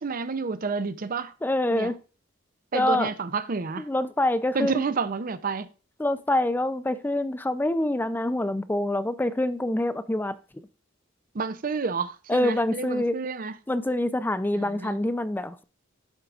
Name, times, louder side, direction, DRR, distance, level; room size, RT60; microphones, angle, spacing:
voice 1, 0.0-1.3 1.7-1.9 2.7-3.9 4.5-5.7 11.3-13.6 14.5-15.0, right 4 dB, 40° right, 0.5 m, -30 dB
voice 2, 1.4-2.0 2.7-3.1 3.9-4.8 6.0-10.3 12.3-13.2 13.7-15.6, left 1 dB, 10° left, 0.4 m, -26 dB
12.5 x 4.7 x 2.5 m
head